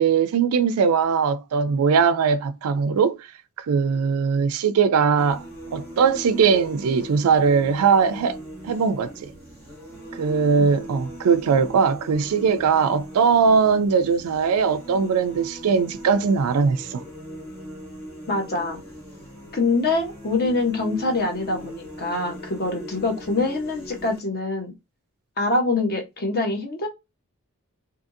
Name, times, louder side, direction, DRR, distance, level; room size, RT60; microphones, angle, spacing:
voice 1, 0.0-3.2 3.6-5.4 5.7-8.4 8.6-9.3 10.1-17.0, right 6 dB, 75° right, 0.4 m, -20 dB
sound 1, 5.2-24.2, equal, 10° left, 1.2 m, -40 dB
voice 2, 18.3-18.8 19.5-24.7 25.4-26.9, left 3 dB, 45° left, 0.9 m, -25 dB
2.7 x 2.6 x 2.5 m
head